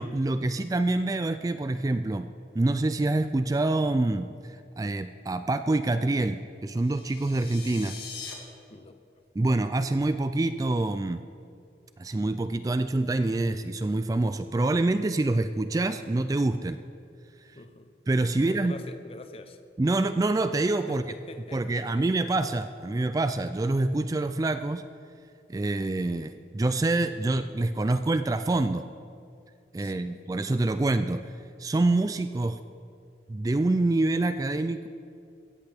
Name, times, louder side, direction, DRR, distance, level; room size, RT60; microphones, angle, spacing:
voice 1, 0.0-4.3 4.8-8.0 9.4-11.2 12.0-16.8 18.1-18.7 19.8-21.0 21.5-24.8 25.5-28.9 29.7-31.2 31.6-32.6 33.3-34.9, right 2 dB, 20° right, 10 dB, 0.3 m, -26 dB
sound 1, 6.7-8.3, left 5 dB, 65° left, 2.1 m, -42 dB
voice 2, 17.5-17.9 18.3-19.6 20.9-22.1 29.8-30.2, left 2 dB, 35° left, 9 dB, 0.7 m, -44 dB
16.5 x 13.5 x 3.5 m, 2.4 s
head